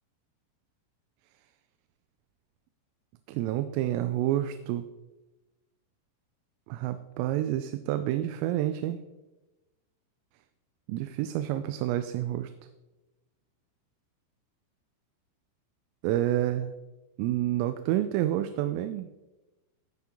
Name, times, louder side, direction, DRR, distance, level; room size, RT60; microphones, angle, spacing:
voice 1, 3.3-4.9 6.7-9.0 10.9-12.5 16.0-16.7 17.2-19.1, right 13 dB, 85° right, 9 dB, 3.2 m, -29 dB
17.0 x 6.1 x 3.6 m, 1.1 s
omnidirectional pair, 5.8 m